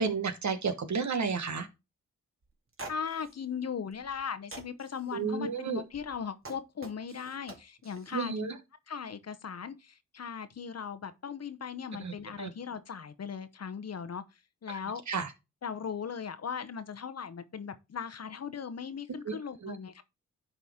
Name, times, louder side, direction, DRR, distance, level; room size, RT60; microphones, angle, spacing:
voice 1, 0.0-1.7 5.1-5.8 8.1-8.6 12.0-12.1 12.4-12.5 15.1-15.3 19.2-19.3 19.6-19.8, right 5 dB, 60° right, 1.3 m, -31 dB
sound 1, 2.4-2.5 2.7-3.3 3.9-4.2 4.5-5.1 5.9-8.3, right 2 dB, 40° right, 2.3 m, -46 dB
voice 2, 2.9-8.3 8.9-14.2 14.6-15.0 15.6-20.0, left 7 dB, 50° left, 0.9 m, -38 dB
10.5 x 4.0 x 3.6 m
supercardioid pair, 45°, 33 cm